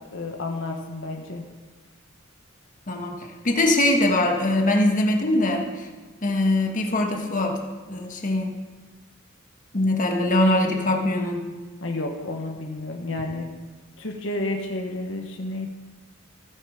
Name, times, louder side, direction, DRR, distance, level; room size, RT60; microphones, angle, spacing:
voice 1, 0.1-1.4 11.8-13.5 14.0-15.7, left 2 dB, 70° left, 2 dB, 1.3 m, -31 dB
voice 2, 2.9-3.2 3.4-5.9 6.2-7.6 7.9-8.5 9.7-11.4, left 1 dB, 40° left, 2 dB, 1.5 m, -22 dB
15.5 x 9.2 x 5.1 m, 1.3 s
head